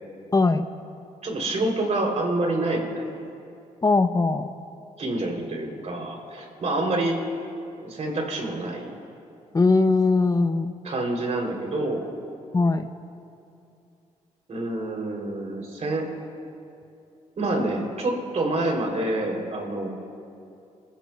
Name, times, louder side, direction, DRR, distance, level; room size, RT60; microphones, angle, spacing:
voice 1, 0.3-0.7 3.8-4.5 9.5-10.7 12.5-12.9, left 3 dB, 25° left, 9 dB, 0.6 m, -20 dB
voice 2, 1.2-3.1 5.0-7.2 7.8-8.9 10.8-12.0 14.5-16.1 17.4-19.9, right 2 dB, 55° right, 1 dB, 3.2 m, -27 dB
28.0 x 15.0 x 2.3 m, 2.6 s
supercardioid pair, 65°, 14 cm